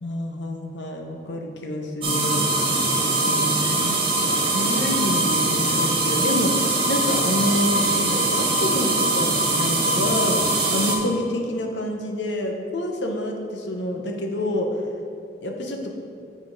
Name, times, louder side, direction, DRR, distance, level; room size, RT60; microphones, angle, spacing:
voice 1, 0.0-2.4 3.3-4.0 4.5-10.4 10.7-14.7 15.4-16.0, left 1 dB, 75° left, 3 dB, 0.8 m, -28 dB
sound 1, 2.0-11.0, right 2 dB, 30° right, 0.9 m, -22 dB
7.4 x 5.1 x 3.9 m, 2.5 s
head